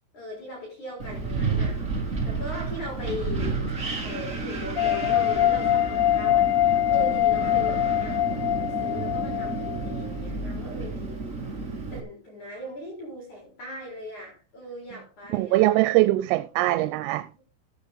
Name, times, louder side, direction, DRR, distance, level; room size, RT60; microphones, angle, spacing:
voice 1, 0.1-1.8 2.2-3.7 4.0-6.6 6.9-8.3 8.6-15.8, left 1 dB, 40° left, 5.6 m, -39 dB
Wind, 1.0-12.0, right 3 dB, 25° right, 1.7 m, -31 dB
sound 1, 4.8-10.0, left 13 dB, 85° left, 2.2 m, -23 dB
voice 2, 15.3-17.4, right 17 dB, 90° right, 3.4 m, -22 dB
15.5 x 8.7 x 3.8 m
omnidirectional pair, 5.8 m